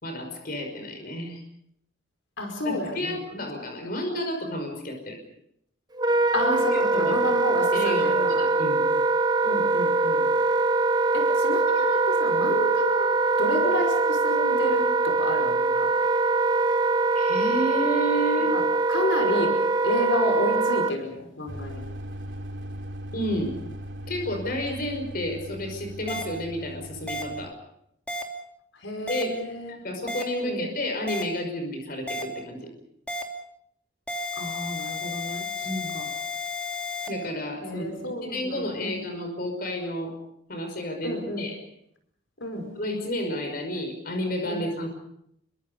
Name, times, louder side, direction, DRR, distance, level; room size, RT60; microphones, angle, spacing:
voice 1, 0.0-1.4 2.6-5.2 6.4-7.2 7.7-8.8 17.1-18.6 23.1-23.6 24.1-27.5 29.1-29.3 29.7-32.7 35.6-36.0 37.1-37.9 38.2-40.1 40.5-41.6 42.7-44.9, equal, 50° left, 5 dB, 5.5 m, -31 dB
voice 2, 2.4-3.4 6.3-8.4 9.4-10.3 11.1-15.7 18.5-18.6 18.9-19.5 19.8-21.8 28.8-29.7 30.4-30.6 34.4-35.5 35.9-36.1 37.6-39.0 41.0-41.5 42.4-42.6 44.5-44.6, left 1 dB, 75° left, 4 dB, 5.2 m, -30 dB
Wind instrument woodwind instrument, 5.9-20.9, right 3 dB, 20° right, 1.0 m, -23 dB
sound 1, 21.5-27.5, equal, 80° right, 3.9 m, -39 dB
sound 2, 26.1-26.2 27.1-27.2 28.1-28.2 29.1-29.2 30.1-30.2 31.1-31.2 32.1-32.2 33.1-33.2 34.1-37.1, left 3 dB, 5° left, 2.7 m, -32 dB
28.0 x 23.5 x 5.4 m, 0.75 s
head